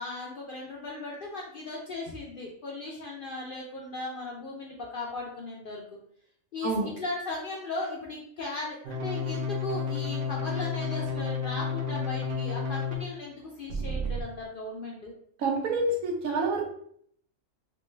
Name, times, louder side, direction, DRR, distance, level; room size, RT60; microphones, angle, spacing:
voice 1, 0.0-5.8 6.5-15.1, left 2 dB, 65° left, -2 dB, 0.5 m, -37 dB
sound 1, 8.8-12.9 13.7-14.2, left 4 dB, 65° right, 0.6 m, -31 dB
voice 2, 15.4-16.6, right 2 dB, 90° right, 1 dB, 1.2 m, -27 dB
3.1 x 2.1 x 3.1 m, 0.65 s
omnidirectional pair, 1.4 m